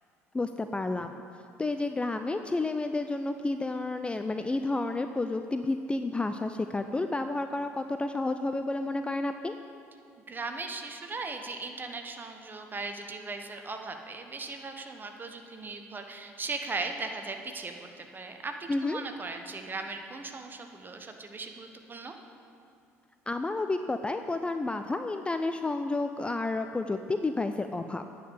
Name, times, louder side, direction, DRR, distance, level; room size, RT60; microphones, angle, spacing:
voice 1, 0.3-9.6 18.7-19.0 23.3-28.0, left 2 dB, 15° left, 8 dB, 0.4 m, -31 dB
voice 2, 10.3-22.1, right 3 dB, 25° right, 5 dB, 1.1 m, -38 dB
9.0 x 6.7 x 8.3 m, 2.5 s
figure-of-eight pair, 55°, 8 cm